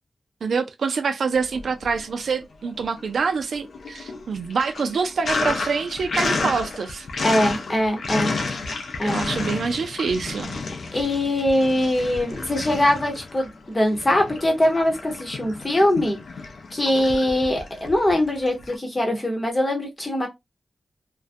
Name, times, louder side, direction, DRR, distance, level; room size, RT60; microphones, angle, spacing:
voice 1, 0.4-7.1 9.0-10.6, right 5 dB, 75° right, 0.4 m, -26 dB
Sink (filling or washing), 1.4-2.3 2.6-18.8, left 3 dB, 75° left, 0.5 m, -31 dB
voice 2, 7.2-8.3 9.0-9.2 10.9-16.2 16.7-20.3, left 1 dB, 20° left, 0.9 m, -22 dB
2.4 x 2.1 x 2.5 m
wide cardioid pair, 130°, 0 cm